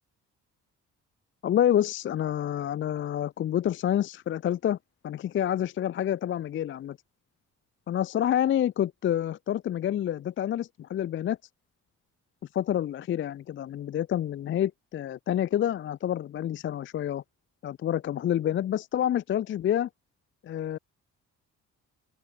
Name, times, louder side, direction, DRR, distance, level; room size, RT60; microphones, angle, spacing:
voice 1, 1.4-4.8 5.0-7.0 7.9-11.4 12.5-17.2 17.6-19.9 20.4-20.8, left 11 dB, 40° left, 0.4 m, -28 dB
open air
cardioid pair, 90°, 30 cm